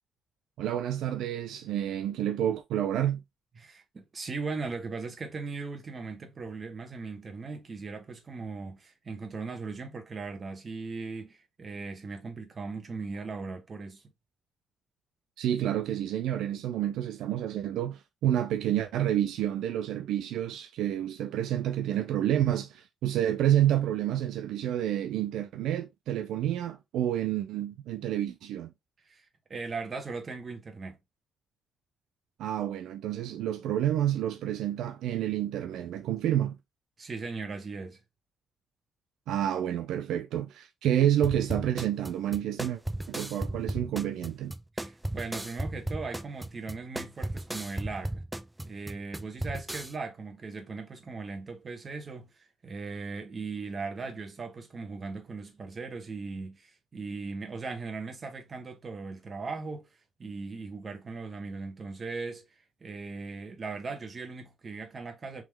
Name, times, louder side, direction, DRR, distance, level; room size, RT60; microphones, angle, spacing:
voice 1, 0.6-3.2 15.4-28.7 32.4-36.6 39.3-42.8 43.1-44.5, right 11 dB, 85° right, 0.4 m, -29 dB
voice 2, 3.6-14.0 29.0-29.2 29.5-31.0 37.0-38.0 44.7-48.2 48.6-59.9 60.2-62.4 62.8-65.4, right 4 dB, 35° right, 1.3 m, -38 dB
sound 1, 41.2-49.9, right 1 dB, 10° right, 0.3 m, -35 dB
3.7 x 3.0 x 3.2 m
cardioid pair, 90°, 0 cm